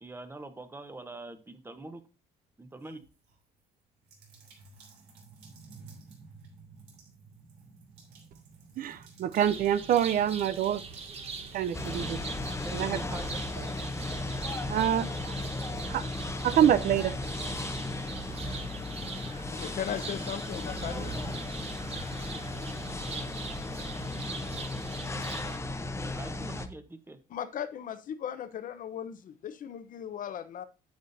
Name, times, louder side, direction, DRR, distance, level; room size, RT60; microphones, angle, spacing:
voice 1, 0.0-2.0 2.6-3.0 12.6-13.4 26.1-27.2, right 2 dB, 15° right, 1.0 m, -44 dB
sound 1, 2.8-3.4 4.0-12.1, right 4 dB, 75° right, 3.1 m, -53 dB
voice 2, 8.8-10.8 11.5-12.2 12.7-13.0 14.7-15.1 15.9-16.0 16.4-17.1, right 10 dB, 55° right, 0.5 m, -26 dB
sound 2, 9.4-25.6, right 4 dB, 35° right, 1.2 m, -43 dB
sound 3, 11.7-26.7, left 2 dB, 15° left, 0.8 m, -36 dB
voice 3, 19.5-21.2 27.3-30.6, left 9 dB, 55° left, 0.8 m, -37 dB
9.5 x 8.2 x 2.7 m
cardioid pair, 110°, 17 cm